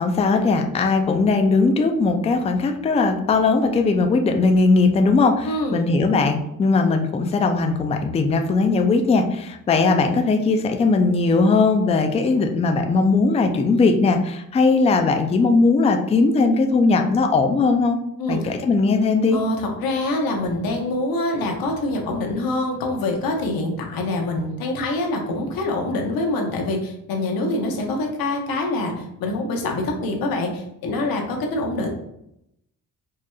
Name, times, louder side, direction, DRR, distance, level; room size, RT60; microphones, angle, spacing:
voice 1, 0.0-18.0 18.3-19.4, left 3 dB, 20° left, 5 dB, 0.3 m, -19 dB
voice 2, 5.4-5.8 18.2-18.5 19.3-31.9, left 2 dB, 80° left, 1 dB, 0.9 m, -25 dB
4.7 x 2.9 x 2.3 m, 0.79 s
cardioid pair, 110°, 35 cm